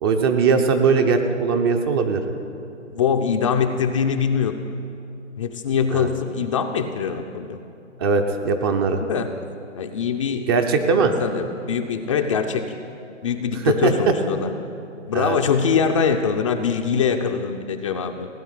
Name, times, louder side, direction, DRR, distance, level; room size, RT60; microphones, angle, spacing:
voice 1, 0.0-2.2 5.9-6.1 8.0-9.0 10.5-11.2 13.6-14.1 15.1-15.4, right 5 dB, 20° right, 6 dB, 0.6 m, -20 dB
voice 2, 2.9-4.5 5.4-7.6 9.0-9.3 9.8-10.5 11.0-12.7 13.2-14.5 15.1-18.3, left 6 dB, 25° left, 5 dB, 0.6 m, -23 dB
17.0 x 9.1 x 9.1 m, 2.7 s
hypercardioid pair, 140°, 38 cm